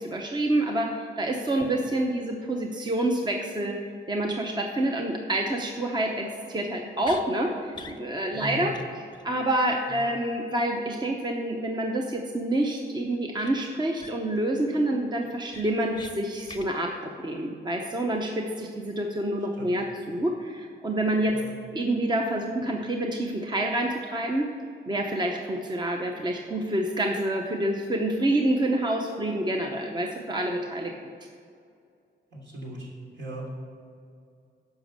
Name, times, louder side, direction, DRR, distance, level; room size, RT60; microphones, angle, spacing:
voice 1, 0.0-3.8 4.1-8.7 9.2-21.4 21.7-24.5 24.9-30.9, right 1 dB, 20° right, 2 dB, 0.8 m, -27 dB
sound 1, 7.0-7.3 7.7-8.0 8.3-8.4 8.7-8.9 9.1-9.2 13.4-13.5 14.0-14.4 14.8-14.9 15.2-16.1 16.5-16.7, left 3 dB, 20° left, 0.7 m, -43 dB
voice 2, 8.4-8.7 9.9-10.0 19.6-19.8 21.3-21.5 32.3-32.9 33.1-33.5, right 1 dB, 65° right, -3 dB, 3.0 m, -38 dB
10.5 x 6.2 x 6.6 m, 2.4 s
wide cardioid pair, 130°, 20 cm